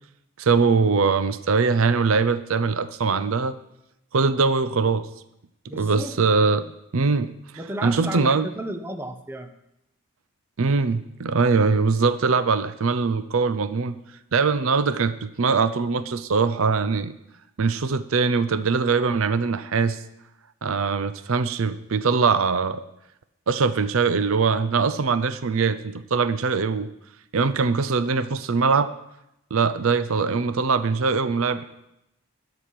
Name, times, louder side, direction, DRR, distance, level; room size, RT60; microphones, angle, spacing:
voice 1, 0.4-3.5 4.1-5.1 5.7-6.7 6.9-7.3 7.8-8.5 10.6-14.0 14.3-17.1 17.6-20.0 20.6-22.8 23.5-26.9 27.3-28.9 29.5-31.7, right 4 dB, 70° right, 13 dB, 0.6 m, -22 dB
voice 2, 5.7-6.1 7.6-9.5, right 1 dB, 10° right, 6 dB, 0.8 m, -33 dB
13.5 x 4.9 x 8.6 m, 0.84 s
head